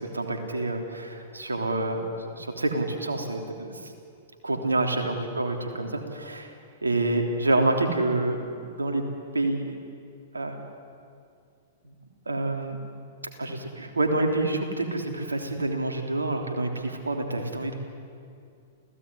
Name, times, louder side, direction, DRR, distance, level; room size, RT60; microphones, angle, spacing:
voice 1, 0.0-3.9 4.4-6.5 6.8-9.0 9.3-9.8 10.3-10.6 12.2-12.8 13.4-17.7, right 2 dB, 90° right, 4 dB, 3.4 m, -27 dB
29.0 x 17.0 x 9.9 m, 2.4 s
hypercardioid pair, 110°, 0 cm